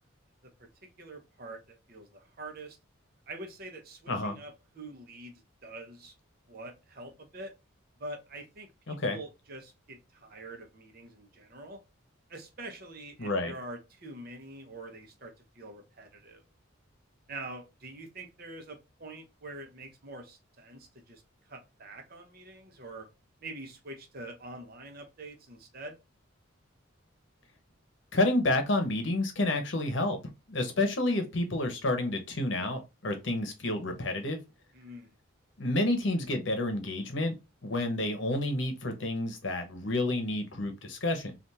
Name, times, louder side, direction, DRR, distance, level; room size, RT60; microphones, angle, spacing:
voice 1, 1.0-2.8 3.3-6.1 6.5-7.5 8.0-11.8 12.3-16.4 17.3-21.2 21.5-23.1 23.4-26.0 34.7-35.2, right 2 dB, 45° right, 0.8 m, -45 dB
voice 2, 4.1-4.4 8.9-9.2 13.2-13.5 28.1-30.2 30.5-34.4 35.6-37.3 37.6-41.4, left 2 dB, 60° left, 0.9 m, -29 dB
3.4 x 2.5 x 2.7 m
head